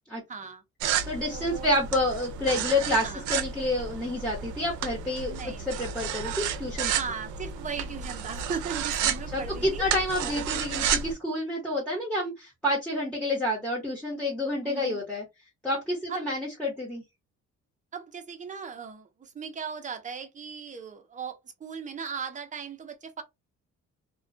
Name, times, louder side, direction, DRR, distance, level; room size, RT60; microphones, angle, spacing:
voice 1, 0.3-0.6 1.3-1.7 3.0-3.2 5.3-5.8 6.9-9.9 10.2-10.8 14.6-15.0 16.1-16.2 17.9-23.2, right 6 dB, 25° right, 0.6 m, -38 dB
sound 1, 0.8-11.1, right 7 dB, 80° right, 0.5 m, -32 dB
voice 2, 1.1-6.9 9.3-15.2 15.6-17.0, left 1 dB, 5° left, 1.0 m, -29 dB
2.3 x 2.2 x 2.5 m
cardioid pair, 90°, 30 cm